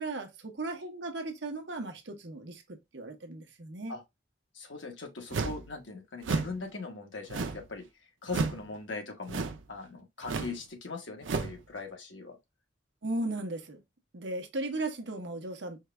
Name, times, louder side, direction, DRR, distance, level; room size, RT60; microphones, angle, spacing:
voice 1, 0.0-3.9 13.0-13.8 14.1-15.8, right 2 dB, 65° right, 0.9 m, -36 dB
voice 2, 4.5-9.4 9.7-12.4, left 3 dB, 75° left, 1.2 m, -40 dB
sound 1, 5.3-5.7 6.2-6.6 7.3-7.7 8.3-8.6 9.3-9.7 10.2-10.6 11.2-11.6, right 4 dB, 90° right, 0.6 m, -32 dB
4.6 x 2.3 x 3.2 m
head